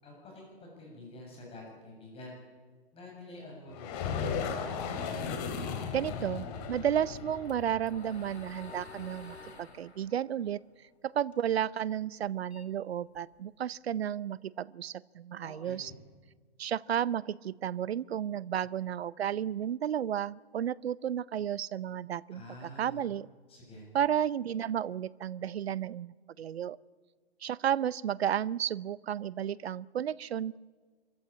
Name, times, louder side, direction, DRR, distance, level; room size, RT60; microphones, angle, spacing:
voice 1, 0.0-2.4 2.9-4.2 15.4-15.9 22.3-23.0 23.5-23.9, left 1 dB, 20° left, -1 dB, 7.5 m, -48 dB
sound 1, 3.7-9.4, left 6 dB, 40° left, 3.1 m, -37 dB
voice 2, 5.9-10.6 11.0-15.9 16.6-23.3 23.9-26.8 27.4-30.6, right 10 dB, 75° right, 22 dB, 0.7 m, -32 dB
sound 2, 7.0-11.6 11.9-13.5, left 3 dB, 90° left, 2.8 m, -51 dB
25.5 x 14.5 x 8.8 m, 1.5 s
hypercardioid pair, 135°, 32 cm